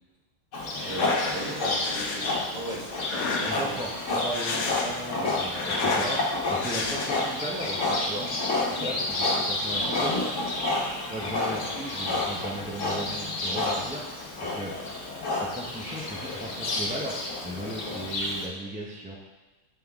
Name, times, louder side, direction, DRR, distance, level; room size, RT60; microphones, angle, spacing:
Livestock farm animals working animals, 0.5-18.5, left 2 dB, 60° left, 1.5 m, -29 dB
sound 1, 0.8-1.4 1.8-2.3 3.0-3.8 4.2-5.1 5.4-6.2 6.6-7.4, left 4 dB, 80° left, 1.2 m, -32 dB
voice 1, 0.8-3.8 4.8-4.9, right 1 dB, 30° right, -5 dB, 1.2 m, -38 dB
voice 2, 3.4-8.3 8.7-10.3 11.1-14.9 15.4-19.2, right 1 dB, 10° right, -3 dB, 0.3 m, -36 dB
8.6 x 3.7 x 3.5 m, 1.1 s
omnidirectional pair, 1.5 m